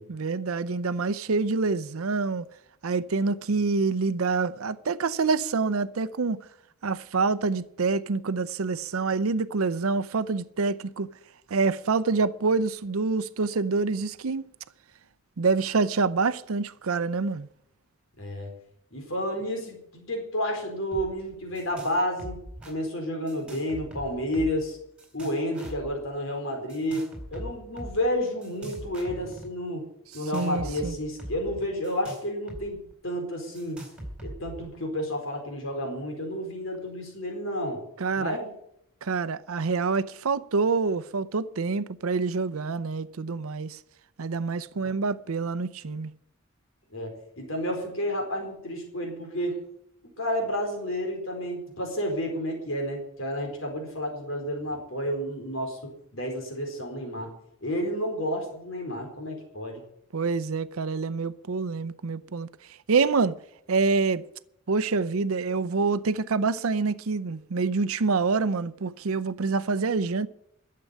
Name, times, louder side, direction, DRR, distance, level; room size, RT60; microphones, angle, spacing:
voice 1, 0.1-2.5 2.8-6.5 6.8-11.1 11.5-14.5 15.4-17.5 30.3-30.9 38.0-38.4 39.0-43.8 44.2-46.1 60.1-62.5 62.9-63.4 63.7-64.2 64.7-70.3, right 4 dB, 85° right, 0.6 m, -26 dB
voice 2, 18.2-18.5 18.9-24.8 25.1-27.1 27.3-29.8 30.1-33.8 34.2-37.8 38.2-38.5 44.8-45.0 46.9-49.6 50.2-55.8 56.1-57.3 57.6-59.8, equal, 70° left, 4.3 m, -31 dB
sound 1, 20.9-21.1 21.3-21.9 22.2-22.7 23.3-24.7 25.0-25.9 26.7-28.0 28.4-29.5 30.1-32.7 32.9-33.0 33.6-34.6, right 1 dB, 5° right, 4.1 m, -41 dB
12.5 x 7.7 x 10.0 m
head